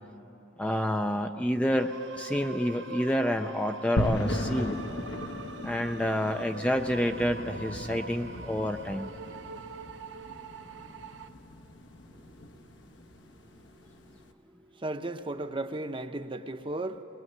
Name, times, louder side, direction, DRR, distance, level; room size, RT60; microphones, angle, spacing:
voice 1, 0.6-4.8 5.6-9.1, equal, 5° left, 5 dB, 0.5 m, -29 dB
sound 1, 1.7-11.3, right 4 dB, 75° right, 1.0 m, -44 dB
sound 2, 4.0-14.2, left 1 dB, 75° left, 1.3 m, -37 dB
voice 2, 14.8-17.0, right 2 dB, 25° right, 8 dB, 0.8 m, -35 dB
21.0 x 20.5 x 9.4 m, 2.9 s
head